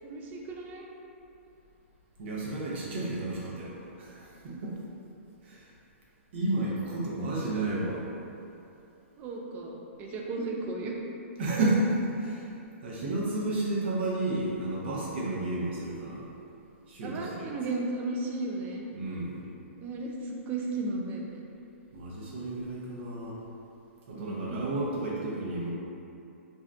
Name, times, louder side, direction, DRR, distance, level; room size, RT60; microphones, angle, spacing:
voice 1, 0.0-0.9 4.4-4.6 9.2-10.9 13.0-13.1 17.0-18.9 19.8-21.5 24.1-24.6, right 2 dB, 25° right, -1 dB, 0.4 m, -35 dB
voice 2, 2.2-4.8 5.4-5.7 6.3-8.0 11.4-12.5 12.8-16.2 16.9-17.5 18.9-19.4 21.9-23.4 24.1-25.7, right 2 dB, 55° right, -5 dB, 0.8 m, -31 dB
2.7 x 2.3 x 3.3 m, 2.7 s
hypercardioid pair, 135°, 7 cm